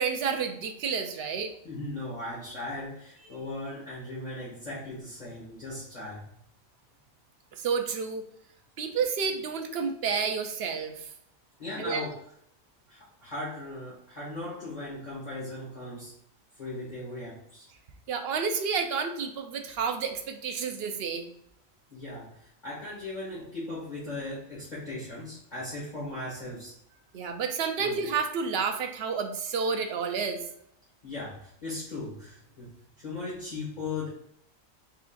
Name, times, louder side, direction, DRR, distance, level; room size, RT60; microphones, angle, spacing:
voice 1, 0.0-1.5 7.6-8.2 8.8-11.1 11.8-12.1 18.1-21.3 27.1-30.4, right 5 dB, 65° right, 5 dB, 0.6 m, -30 dB
voice 2, 1.6-6.2 11.6-12.2 12.9-16.1 16.6-17.7 21.9-26.7 27.8-28.0 31.0-34.1, left 2 dB, 35° left, -9 dB, 1.4 m, -38 dB
3.8 x 3.7 x 2.5 m, 0.74 s
omnidirectional pair, 1.4 m